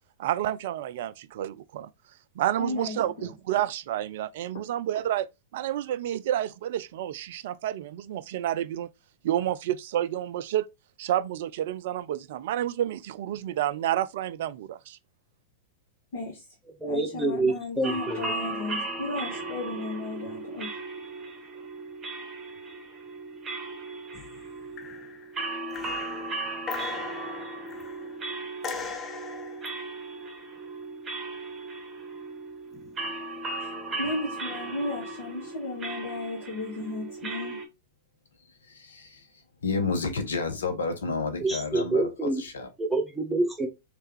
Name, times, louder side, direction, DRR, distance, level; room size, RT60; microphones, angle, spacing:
voice 1, 0.2-1.9 2.4-8.9 9.2-10.7 11.0-15.0, right 12 dB, 60° right, 0.3 m, -29 dB
voice 2, 2.6-3.3 16.1-16.4 16.8-20.7 33.6-33.7 34.0-37.6, left 2 dB, 60° left, 1.4 m, -34 dB
voice 3, 16.8-18.3 41.4-42.4 42.8-43.7, right 2 dB, 5° right, 1.2 m, -27 dB
sound 1, 17.8-37.7, right 2 dB, 20° right, 1.1 m, -37 dB
sound 2, 24.1-24.5 24.8-25.3 25.7-28.1 28.6-29.8 32.7-33.0, left 5 dB, 25° left, 0.7 m, -39 dB
voice 4, 38.7-39.2 39.6-42.7, left 4 dB, 75° left, 0.9 m, -30 dB
3.3 x 3.3 x 3.1 m
figure-of-eight pair, 100°, 0 cm